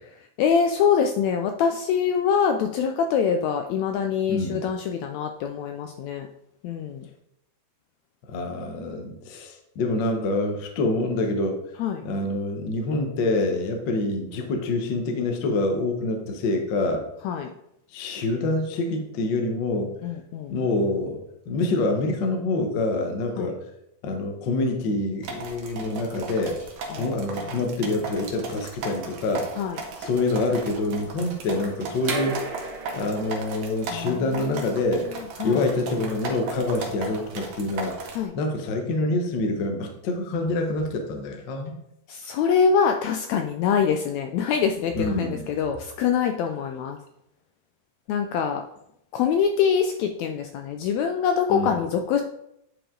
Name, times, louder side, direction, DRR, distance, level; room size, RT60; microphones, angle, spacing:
voice 1, 0.4-6.3 6.6-7.1 11.8-12.0 17.2-17.5 20.0-20.5 23.4-23.5 26.9-27.6 29.6-29.8 33.9-34.8 35.4-35.6 38.1-38.3 42.1-47.0 48.1-48.6 49.1-52.2, left 7 dB, 80° left, 5 dB, 1.7 m, -24 dB
voice 2, 4.3-4.6 8.3-11.6 12.0-17.0 17.9-19.9 20.5-21.2 21.4-23.5 24.0-26.7 27.0-29.5 30.0-32.7 32.9-35.1 35.4-41.8 44.9-45.4 51.5-51.8, left 2 dB, 65° left, 3 dB, 1.1 m, -26 dB
sound 1, 25.2-38.3, right 4 dB, 65° right, 2.0 m, -37 dB
sound 2, 32.0-37.6, right 3 dB, 50° right, 1.6 m, -37 dB
9.9 x 4.9 x 3.8 m, 0.79 s
omnidirectional pair, 3.6 m